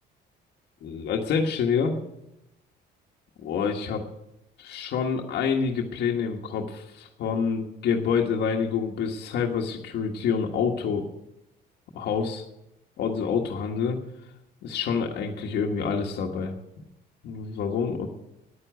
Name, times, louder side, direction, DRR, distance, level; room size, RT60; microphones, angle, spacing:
voice 1, 0.8-1.9 3.4-4.0 4.6-11.1 11.9-12.4 13.0-14.0 14.6-16.6 17.2-18.1, left 6 dB, 70° left, 1 dB, 1.5 m, -27 dB
9.9 x 9.6 x 9.3 m, 0.86 s
cardioid pair, 130°, 19 cm